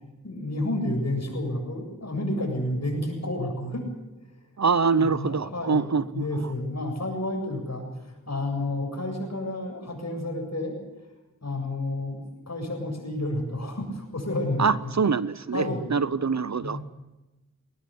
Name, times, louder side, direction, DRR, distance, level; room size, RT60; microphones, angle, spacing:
voice 1, 0.2-3.8 5.0-10.7 11.4-14.9 15.5-15.8 16.6-16.8, left 1 dB, 55° left, 3 dB, 7.6 m, -30 dB
voice 2, 4.6-6.5 14.6-16.8, right 5 dB, 55° right, 17 dB, 0.8 m, -25 dB
21.5 x 19.0 x 7.9 m, 1.0 s
cardioid pair, 45°, 32 cm